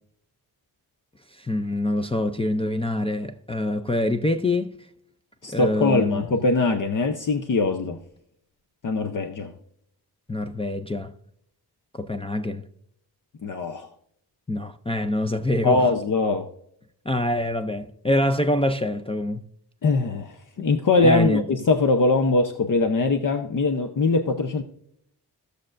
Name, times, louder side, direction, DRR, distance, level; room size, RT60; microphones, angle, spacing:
voice 1, 1.3-4.7 5.5-6.3 10.3-11.2 11.9-12.7 14.5-15.9 17.1-19.4 21.0-21.4, left 1 dB, 15° left, 0.4 m, -25 dB
voice 2, 5.4-8.0 8.8-9.5 13.4-13.9 15.6-16.5 19.8-24.6, left 3 dB, 50° left, 0.7 m, -22 dB
16.0 x 6.5 x 2.5 m
wide cardioid pair, 130°, 40 cm